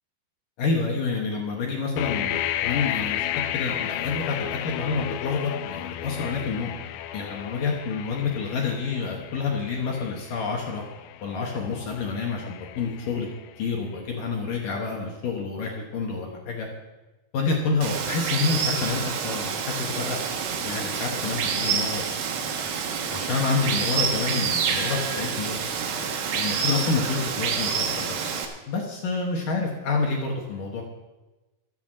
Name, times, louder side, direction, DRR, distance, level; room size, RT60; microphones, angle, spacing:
voice 1, 0.6-3.3 3.5-6.7 7.1-10.8 11.2-13.3 13.6-16.7 17.3-20.2 20.6-22.1 22.6-22.7 23.1-25.6 26.3-28.2 28.7-30.8, left 4 dB, 70° left, 0 dB, 2.0 m, -28 dB
sound 1, 2.0-13.8, left 12 dB, 85° left, 3.2 m, -33 dB
Water, 17.8-28.5, right 6 dB, 70° right, 3.0 m, -28 dB
13.5 x 8.0 x 7.5 m, 1.1 s
omnidirectional pair, 5.9 m